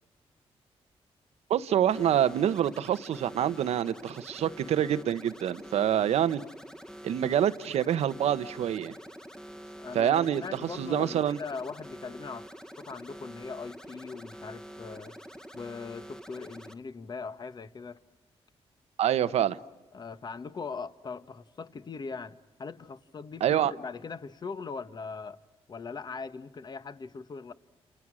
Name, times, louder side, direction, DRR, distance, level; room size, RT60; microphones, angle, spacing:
voice 1, 1.5-6.4 7.0-8.9 9.9-11.4 19.0-19.6 23.4-23.7, right 10 dB, 85° right, 1.0 m, -26 dB
sound 1, 1.9-16.7, equal, 5° left, 1.4 m, -46 dB
voice 2, 9.8-15.2 15.5-18.0 19.9-25.4 25.7-27.5, left 4 dB, 40° left, 1.3 m, -40 dB
30.0 x 29.0 x 6.3 m
cardioid pair, 95°, 11 cm